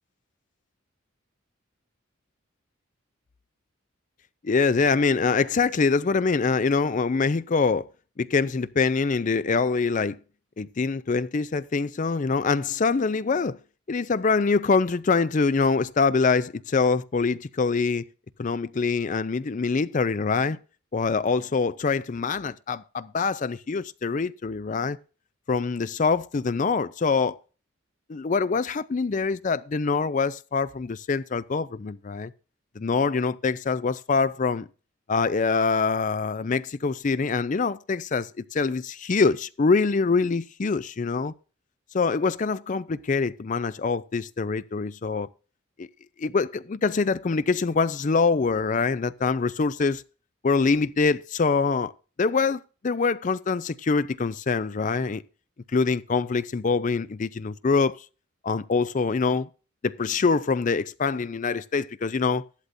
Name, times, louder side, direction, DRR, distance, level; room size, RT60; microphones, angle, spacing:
voice 1, 4.4-7.9 8.2-10.2 10.6-13.6 13.9-18.0 18.4-20.6 20.9-25.0 25.5-27.4 28.1-32.3 32.8-34.7 35.1-41.3 41.9-45.3 45.8-45.9 46.2-50.0 50.4-51.9 52.2-55.2 55.7-58.0 58.4-59.5 59.8-62.4, left 4 dB, 35° left, 0.4 m, -24 dB
14.5 x 11.5 x 2.6 m
head